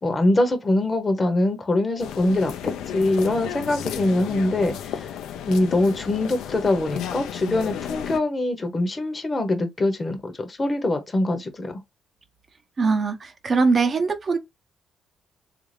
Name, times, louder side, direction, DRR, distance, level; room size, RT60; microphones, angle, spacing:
voice 1, 0.0-5.1 5.5-11.8, left 2 dB, 25° left, 0.8 m, -23 dB
sound 1, 2.0-8.2, left 9 dB, 85° left, 0.4 m, -33 dB
voice 2, 12.8-14.4, right 4 dB, 40° right, 0.8 m, -21 dB
3.6 x 2.5 x 3.2 m
cardioid pair, 90°, 0 cm